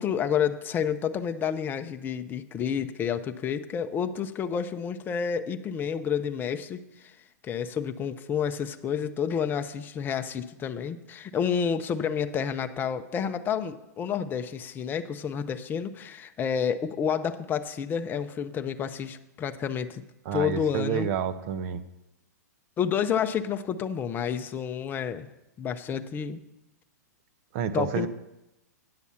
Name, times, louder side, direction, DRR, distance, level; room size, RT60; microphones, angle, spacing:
voice 1, 0.0-7.1 7.4-20.0 20.3-21.1 22.8-25.3 25.6-26.4 27.7-28.1, left 7 dB, 20° left, 8 dB, 0.6 m, -29 dB
voice 2, 20.2-21.8 27.5-28.1, right 8 dB, 50° right, 12 dB, 0.8 m, -29 dB
9.6 x 7.1 x 5.6 m, 0.94 s
hypercardioid pair, 125°, 9 cm